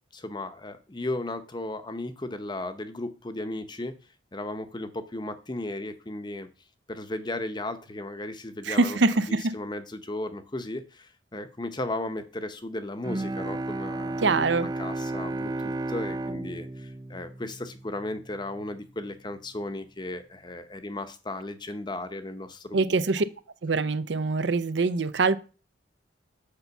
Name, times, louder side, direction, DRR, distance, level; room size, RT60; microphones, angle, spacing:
voice 1, 0.1-3.9 4.3-6.5 6.9-9.0 9.3-14.3 14.8-22.8, left 2 dB, 25° left, 0.8 m, -35 dB
voice 2, 8.6-9.5 14.2-14.7 22.7-23.2 23.6-25.4, right 3 dB, 70° right, 0.6 m, -24 dB
Bowed string instrument, 13.0-18.2, right 2 dB, 20° right, 0.4 m, -33 dB
6.8 x 5.6 x 7.0 m
head